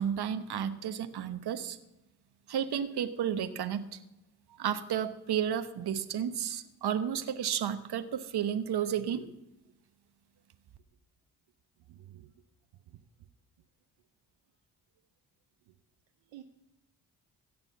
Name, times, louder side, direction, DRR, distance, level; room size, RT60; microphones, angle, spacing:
voice 1, 0.0-1.8 2.5-4.0 4.6-9.3, right 9 dB, 55° right, 11 dB, 1.2 m, -32 dB
voice 2, 11.9-12.3 12.9-13.3 15.7-15.8 16.3-16.4, right 13 dB, 75° right, 6 dB, 0.8 m, -52 dB
16.0 x 6.8 x 7.0 m, 0.91 s
hypercardioid pair, 45°, 45 cm